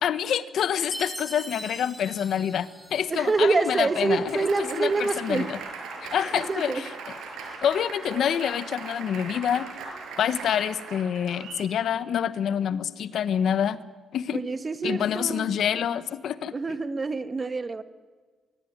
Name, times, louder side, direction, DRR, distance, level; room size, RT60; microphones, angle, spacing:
voice 1, 0.0-4.5 4.7-5.6 6.0-6.8 7.6-9.7 10.2-13.8 14.1-14.4 14.8-16.5, left 9 dB, 70° left, 14 dB, 1.2 m, -27 dB
Chime, 0.9-3.4, right 1 dB, 5° right, 4.8 m, -41 dB
Applause, 3.0-11.7, right 4 dB, 85° right, 6.2 m, -39 dB
voice 2, 3.1-5.5 6.2-6.8 7.4-7.6 14.3-15.5 16.5-17.8, right 3 dB, 30° right, 11 dB, 1.7 m, -26 dB
23.0 x 23.0 x 9.6 m, 1.4 s
cardioid pair, 90°, 0 cm